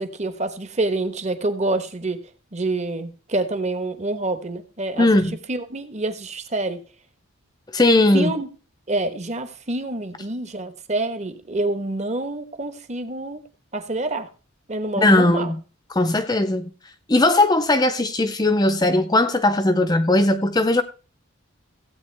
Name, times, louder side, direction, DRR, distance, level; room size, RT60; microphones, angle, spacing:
voice 1, 0.0-2.2 2.5-5.1 5.5-6.8 8.1-8.5 8.9-13.4 13.7-14.3 14.7-15.5, right 2 dB, 30° right, 1.2 m, -27 dB
voice 2, 5.0-5.4 7.7-8.3 15.0-15.6 15.9-16.7 17.1-20.8, left 2 dB, 20° left, 0.6 m, -18 dB
16.0 x 8.5 x 3.4 m
head